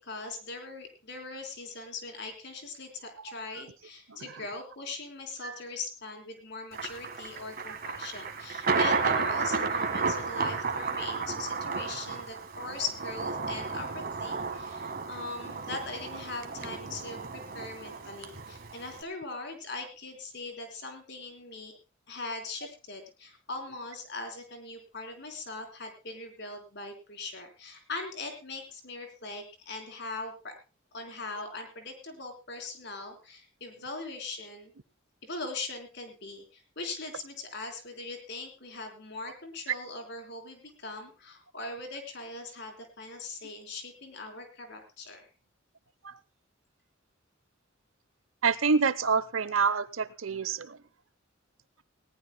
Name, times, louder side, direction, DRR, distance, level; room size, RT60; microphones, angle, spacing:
voice 1, 0.0-21.7 22.1-30.5 30.9-34.7 35.2-45.3, left 3 dB, 60° left, 4 dB, 3.8 m, -40 dB
voice 2, 4.1-4.4 5.4-5.6 46.0-46.2 48.4-50.8, right 5 dB, 90° right, 17 dB, 0.8 m, -27 dB
Thunder, 6.7-19.0, right 4 dB, 50° right, 1.6 m, -33 dB
20.0 x 18.0 x 2.2 m, 0.29 s
head